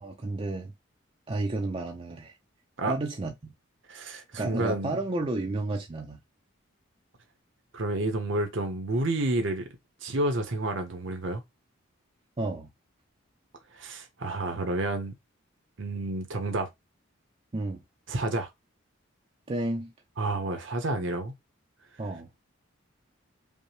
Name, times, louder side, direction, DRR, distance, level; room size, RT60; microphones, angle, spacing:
voice 1, 0.0-0.7 1.3-2.3 2.9-3.5 4.3-6.2 12.4-12.7 17.5-17.8 19.5-19.9 22.0-22.3, right 2 dB, 25° right, 0.4 m, -31 dB
voice 2, 3.9-5.0 7.7-9.7 10.0-11.4 13.7-15.1 15.8-16.7 18.1-18.5 20.2-21.3, right 2 dB, 60° right, 0.8 m, -30 dB
5.3 x 2.1 x 3.2 m
head